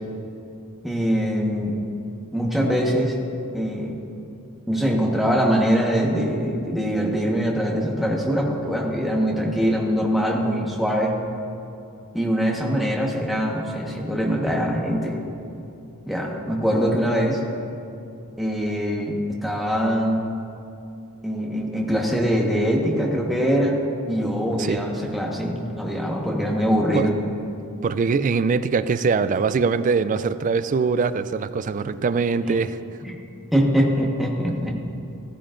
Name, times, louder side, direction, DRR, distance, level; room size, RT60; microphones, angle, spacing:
voice 1, 0.8-1.7 2.3-3.1 3.5-4.0 4.7-11.1 12.1-15.2 16.1-17.4 18.4-20.2 21.2-23.8 24.1-27.1 32.4-32.6 33.0-33.2 33.5-34.8, equal, ahead, -2 dB, 1.3 m, -23 dB
voice 2, 27.8-32.8, right 5 dB, 35° right, 13 dB, 0.3 m, -22 dB
15.5 x 13.5 x 2.6 m, 2.6 s
head